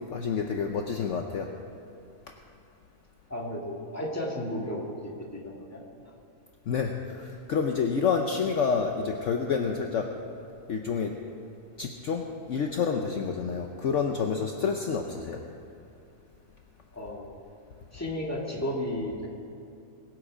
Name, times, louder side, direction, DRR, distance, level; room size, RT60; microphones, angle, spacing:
voice 1, 0.1-1.5 6.7-10.1 10.7-11.1 11.8-15.4, left 6 dB, 60° left, 3 dB, 1.0 m, -28 dB
voice 2, 3.3-4.8 5.3-6.1 16.9-17.4 17.9-19.3, left 1 dB, 10° left, -2 dB, 1.9 m, -34 dB
21.5 x 8.1 x 5.0 m, 2.6 s
omnidirectional pair, 1.6 m